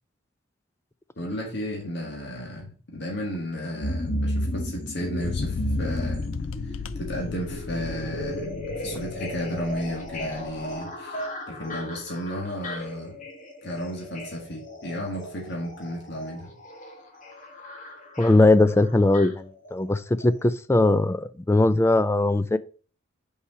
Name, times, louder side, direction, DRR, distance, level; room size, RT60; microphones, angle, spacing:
voice 1, 1.2-6.3 6.6-13.2 13.6-16.5, equal, 60° left, 1.8 m, -33 dB
sound 1, 3.8-19.9 20.2-20.3, left 1 dB, 40° left, 1.5 m, -34 dB
sound 2, 5.2-10.8, left 5 dB, 85° left, 0.5 m, -36 dB
voice 2, 18.2-22.6, left 2 dB, 15° left, 0.3 m, -20 dB
5.8 x 4.8 x 5.6 m
head